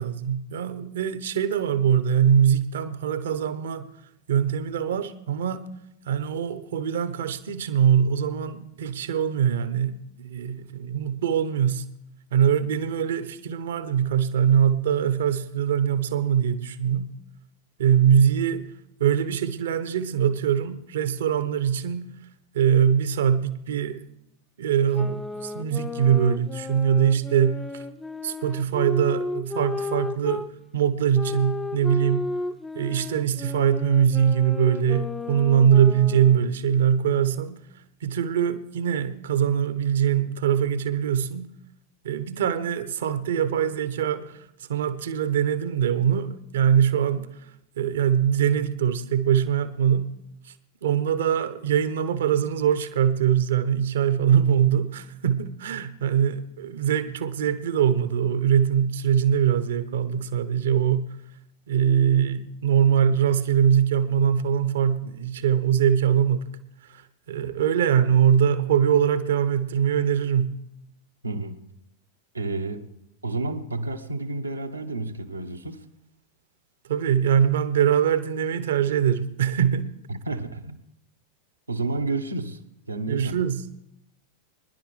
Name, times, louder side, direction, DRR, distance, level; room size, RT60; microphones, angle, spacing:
voice 1, 0.0-3.9 4.3-5.6 6.1-11.9 12.3-17.1 17.8-18.7 19.0-22.1 22.5-24.0 24.6-27.8 28.2-30.5 30.7-32.3 32.7-37.6 38.0-41.5 42.0-44.4 44.7-47.3 47.8-50.1 50.8-61.1 61.7-66.4 66.9-67.0 67.3-70.6 76.9-79.9 83.1-83.6, right 8 dB, 60° right, 1.0 m, -22 dB
sound 1, 24.9-30.5 31.1-36.6, left 3 dB, 10° left, 0.7 m, -33 dB
voice 2, 71.2-71.6 72.3-72.9 73.2-75.8 80.1-80.8 81.7-82.6 82.9-83.4, right 3 dB, 80° right, 1.3 m, -30 dB
25.0 x 11.0 x 3.3 m
figure-of-eight pair, 90°, 0 cm